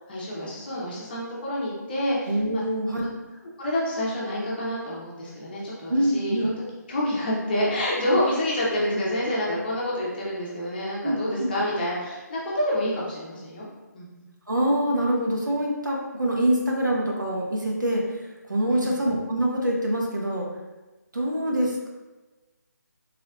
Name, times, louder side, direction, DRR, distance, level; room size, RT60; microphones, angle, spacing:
voice 1, 0.1-2.6 3.6-6.5 6.9-13.7 13.9-14.3 18.6-18.9, left 1 dB, 30° left, -5 dB, 0.8 m, -28 dB
voice 2, 2.3-3.1 5.9-6.5 11.0-11.5 14.5-20.5 21.1-21.9, right 1 dB, 85° right, -1 dB, 0.9 m, -25 dB
3.2 x 3.2 x 2.4 m, 1.2 s
figure-of-eight pair, 155°, 10 cm